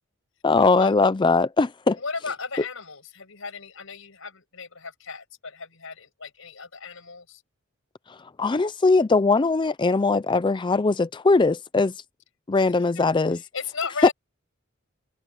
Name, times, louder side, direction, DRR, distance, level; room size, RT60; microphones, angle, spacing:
voice 1, 0.4-2.0 8.4-11.9 12.5-13.4 14.0-14.1, left 3 dB, 20° left, 0.4 m, -20 dB
voice 2, 2.0-7.4 12.9-14.1, left 5 dB, 70° left, 6.9 m, -36 dB
head